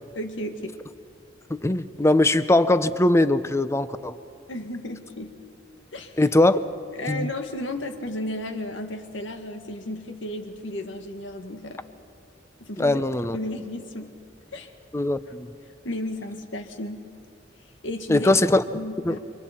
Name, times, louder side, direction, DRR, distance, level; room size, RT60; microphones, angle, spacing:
voice 1, 0.1-0.8 4.5-5.4 5.9-6.2 6.9-11.8 12.6-14.2 14.5-14.7 15.8-17.1 17.8-18.3 18.7-19.2, left 1 dB, 85° left, 6 dB, 1.7 m, -34 dB
voice 2, 1.5-4.1 6.2-6.6 7.1-7.3 12.8-13.4 14.9-15.5 18.1-18.6 19.0-19.2, left 2 dB, 15° left, 13 dB, 0.6 m, -21 dB
28.0 x 24.5 x 4.3 m, 2.3 s
head